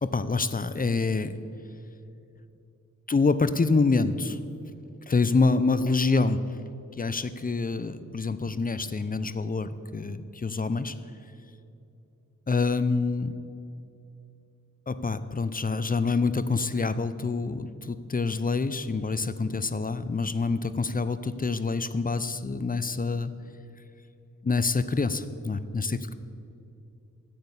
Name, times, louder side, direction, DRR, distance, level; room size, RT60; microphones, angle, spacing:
voice 1, 0.0-1.4 3.1-4.4 5.1-6.4 7.0-10.9 12.5-13.3 14.9-23.3 24.4-26.1, left 4 dB, 30° left, 13 dB, 0.6 m, -26 dB
10.5 x 7.9 x 6.9 m, 2.7 s
cardioid pair, 50°, 31 cm